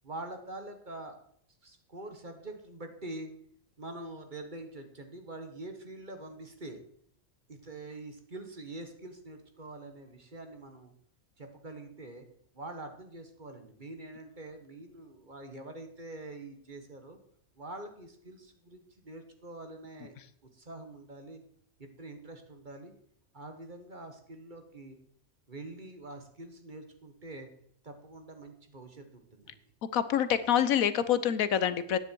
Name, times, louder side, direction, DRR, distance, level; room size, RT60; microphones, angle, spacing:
voice 1, 0.0-1.2 1.6-3.3 3.8-6.8 7.5-10.9 11.4-12.3 12.5-17.2 17.5-20.1 20.5-21.4 21.8-22.9 23.3-25.0 25.5-27.5 27.8-29.6, right 2 dB, 35° right, 6 dB, 1.6 m, -45 dB
voice 2, 29.9-32.0, left 9 dB, 75° left, 14 dB, 1.3 m, -26 dB
14.5 x 9.8 x 4.6 m, 0.65 s
omnidirectional pair, 1.5 m